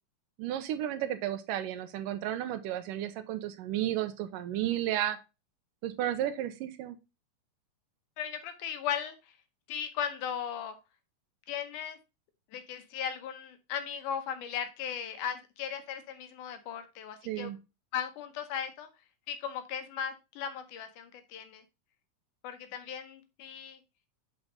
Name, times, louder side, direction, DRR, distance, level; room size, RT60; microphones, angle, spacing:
voice 1, 0.4-5.2 5.8-7.0 17.3-17.6, right 12 dB, 80° right, 10 dB, 2.3 m, -33 dB
voice 2, 8.2-9.2 9.7-10.8 11.5-12.0 12.5-17.5 17.9-18.9 19.3-21.6 22.4-23.8, left 8 dB, 75° left, 9 dB, 2.3 m, -37 dB
6.4 x 6.0 x 3.7 m, 0.27 s
omnidirectional pair, 3.8 m